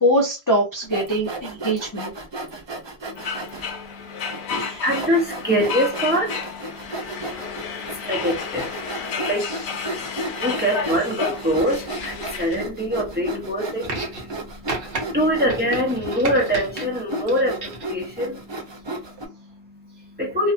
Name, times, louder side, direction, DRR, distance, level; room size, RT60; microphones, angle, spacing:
voice 1, 0.0-2.1 4.5-4.8, equal, 25° left, 0.5 m, -22 dB
Sawing, 0.8-3.7 4.3-4.4 4.9-19.3, right 1 dB, 40° right, 0.4 m, -34 dB
voice 2, 3.0-20.5, equal, 10° right, 0.8 m, -26 dB
sound 1, 3.2-12.6, left 6 dB, 80° left, 0.9 m, -32 dB
sound 2, 13.8-14.4 14.7-15.0 15.5-16.8 17.3-17.9 19.0-19.1, right 2 dB, 65° right, 1.0 m, -32 dB
2.8 x 2.3 x 2.4 m
omnidirectional pair, 1.1 m